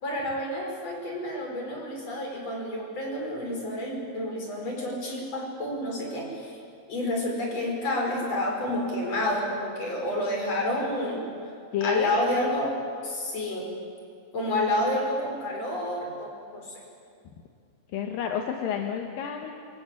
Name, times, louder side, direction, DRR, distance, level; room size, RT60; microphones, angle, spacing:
voice 1, 0.0-6.6 6.9-11.3 11.8-12.8 13.0-13.7 14.3-16.8, left 1 dB, 35° left, 0 dB, 6.4 m, -29 dB
voice 2, 11.7-12.3 17.9-19.5, left 8 dB, 65° left, 3 dB, 2.6 m, -30 dB
26.5 x 25.0 x 8.6 m, 2.4 s
omnidirectional pair, 5.3 m